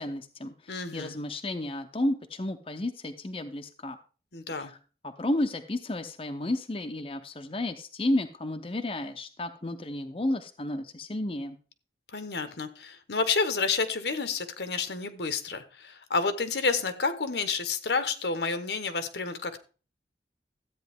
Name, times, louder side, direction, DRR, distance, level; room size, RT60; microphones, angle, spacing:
voice 1, 0.0-4.0 4.6-4.8 5.0-11.6, left 1 dB, 30° left, 6 dB, 0.7 m, -32 dB
voice 2, 0.7-1.1 4.3-4.7 12.1-19.6, left 4 dB, 75° left, 10 dB, 1.1 m, -30 dB
13.0 x 8.8 x 3.5 m, 0.36 s
head